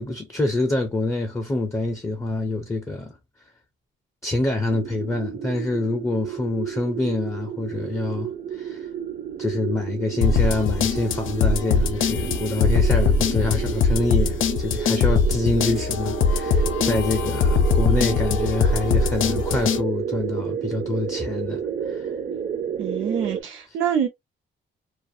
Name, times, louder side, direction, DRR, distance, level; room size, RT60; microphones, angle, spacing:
voice 1, 0.0-3.1 4.2-8.9 9.4-21.6 21.9-22.1, left 2 dB, 15° left, 0.4 m, -26 dB
sound 1, 4.7-23.4, right 8 dB, 40° right, 0.4 m, -31 dB
sound 2, 10.2-19.8, left 5 dB, 80° left, 0.5 m, -22 dB
voice 2, 22.8-24.1, right 8 dB, 85° right, 0.6 m, -25 dB
2.3 x 2.2 x 2.6 m
wide cardioid pair, 175°, 20 cm